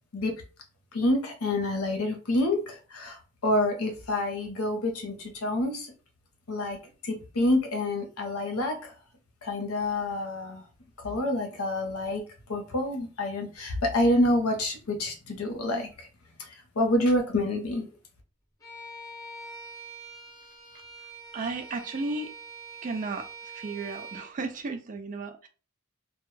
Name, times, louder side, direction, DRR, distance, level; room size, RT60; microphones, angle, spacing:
voice 1, 0.9-5.9 6.5-6.8 7.0-8.9 9.4-10.7 11.0-12.2 12.5-16.1 16.5-17.9, left 1 dB, 75° left, 0.7 m, -27 dB
Bowed string instrument, 18.6-24.3, right 3 dB, 15° left, 0.6 m, -44 dB
voice 2, 21.3-22.3 22.8-23.3 23.5-25.5, right 3 dB, 35° right, 0.3 m, -34 dB
2.1 x 2.0 x 3.0 m
head